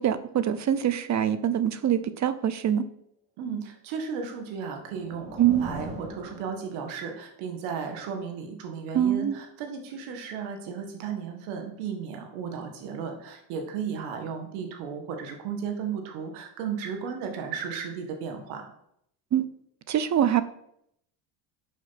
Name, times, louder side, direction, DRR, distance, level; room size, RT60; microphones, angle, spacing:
voice 1, 0.0-2.8 5.4-5.7 8.9-9.4 19.3-19.5 19.9-20.4, right 10 dB, 35° right, 13 dB, 0.6 m, -24 dB
voice 2, 3.4-18.7, right 6 dB, 85° right, 4 dB, 1.9 m, -34 dB
sound 1, 4.4-7.2, right 1 dB, 15° right, 1.8 m, -42 dB
6.3 x 5.6 x 5.8 m, 0.74 s
supercardioid pair, 95°, 47 cm